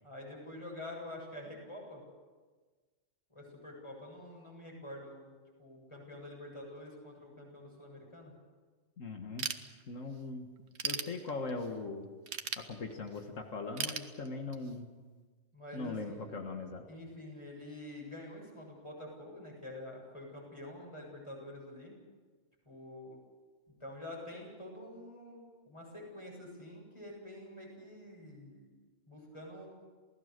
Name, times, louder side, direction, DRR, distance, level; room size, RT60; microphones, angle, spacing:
voice 1, 0.0-2.0 3.3-8.3 15.5-16.2 16.9-22.0 22.7-23.2 23.8-28.7 29.1-29.7, left 1 dB, 25° left, -1 dB, 7.5 m, -47 dB
voice 2, 9.0-9.5 9.9-10.5 10.8-12.1 12.6-14.9 15.7-16.8, left 3 dB, 85° left, 3 dB, 2.0 m, -40 dB
Ratchet pawl / Tools, 9.4-10.2 10.6-11.7 12.3-13.2 13.8-14.8, right 6 dB, 60° right, 1.4 m, -38 dB
28.5 x 17.5 x 6.7 m, 1.4 s
omnidirectional pair, 1.3 m